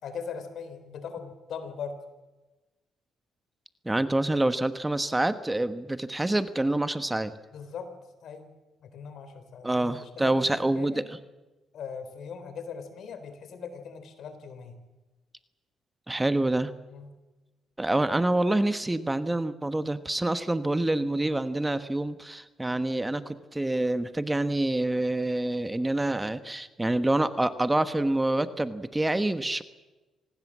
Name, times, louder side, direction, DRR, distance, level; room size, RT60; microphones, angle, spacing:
voice 1, 0.0-2.0 7.5-7.9 8.2-8.5 8.8-11.1 11.7-14.8 16.9-17.1, left 6 dB, 70° left, 10 dB, 3.9 m, -40 dB
voice 2, 3.8-7.3 9.6-11.0 16.1-16.7 17.8-29.6, right 1 dB, 15° right, 11 dB, 1.3 m, -27 dB
25.5 x 19.5 x 7.5 m, 1.1 s
cardioid pair, 90°, 0 cm